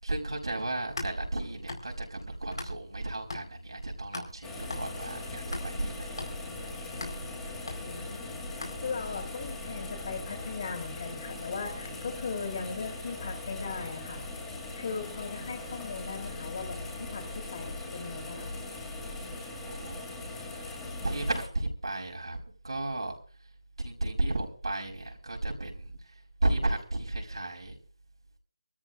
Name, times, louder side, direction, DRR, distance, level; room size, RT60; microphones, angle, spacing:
voice 1, 0.0-6.3 7.1-7.2 19.7-20.0 20.5-20.8 21.0-23.1 23.8-26.0 26.4-27.8, right 2 dB, 85° right, 0 dB, 5.0 m, -33 dB
sound 1, 0.6-3.0 3.3-9.2, left 2 dB, 75° left, 4.4 m, -42 dB
sound 2, 4.4-21.5, left 2 dB, 10° left, 2.1 m, -40 dB
voice 2, 7.8-8.3 8.8-18.6, left 5 dB, 35° left, 4 dB, 3.1 m, -38 dB
26.0 x 13.5 x 2.6 m, 0.36 s
figure-of-eight pair, 165°, 3 cm